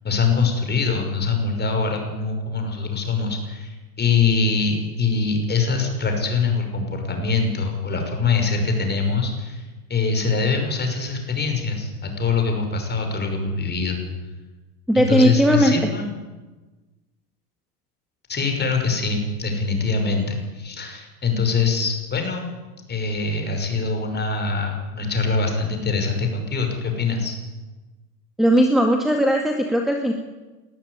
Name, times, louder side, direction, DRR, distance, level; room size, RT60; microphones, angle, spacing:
voice 1, 0.0-14.0 14.9-16.1 18.3-22.5 22.9-27.4, left 4 dB, 20° left, 4 dB, 5.7 m, -23 dB
voice 2, 14.9-15.7 28.4-30.1, equal, ahead, 3 dB, 2.0 m, -18 dB
20.0 x 13.5 x 9.6 m, 1.2 s
hypercardioid pair, 105°, 46 cm